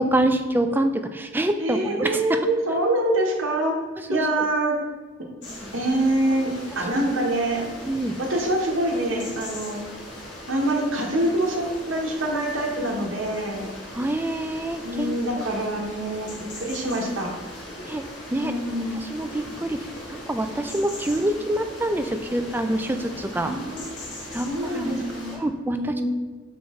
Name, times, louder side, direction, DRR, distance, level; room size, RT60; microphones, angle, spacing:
voice 1, 0.0-2.4 4.1-4.2 6.9-7.1 7.9-8.2 13.9-15.2 17.9-18.0 18.3-18.5 19.1-19.8 20.1-23.5 24.3-24.5 24.8-25.1 25.4-25.9, right 1 dB, 10° right, 7 dB, 0.3 m, -25 dB
voice 2, 1.6-3.8 4.1-4.8 5.7-7.7 8.2-9.8 10.5-13.6 14.8-17.3 18.4-19.1 23.3-23.9 24.4-25.4 25.8-26.0, right 1 dB, 75° right, -1 dB, 1.1 m, -25 dB
sound 1, 5.4-25.4, left 1 dB, 60° left, 1.9 m, -39 dB
6.2 x 4.7 x 3.6 m, 1.4 s
head